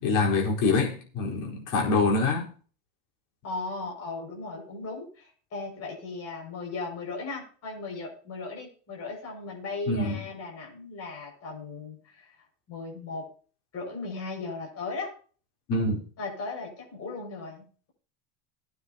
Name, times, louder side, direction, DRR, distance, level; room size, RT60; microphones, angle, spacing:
voice 1, 0.0-2.5 9.9-10.2 15.7-16.0, left 3 dB, 55° left, 4.4 m, -25 dB
voice 2, 3.4-12.4 12.7-13.3 13.7-15.1 16.2-17.9, left 3 dB, 40° left, 6.3 m, -37 dB
19.5 x 9.5 x 2.9 m
cardioid pair, 140°, 39 cm